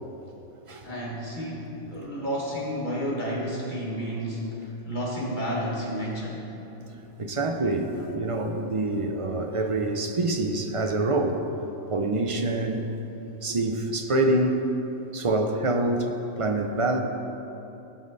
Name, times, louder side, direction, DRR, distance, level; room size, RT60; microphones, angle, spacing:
voice 1, 0.8-6.5, equal, 40° left, -4 dB, 1.8 m, -31 dB
voice 2, 7.2-11.4 11.9-12.9 13.4-14.6 15.1-17.0, right 2 dB, 35° right, 4 dB, 0.6 m, -26 dB
16.0 x 5.4 x 4.0 m, 3.0 s
omnidirectional pair, 1.3 m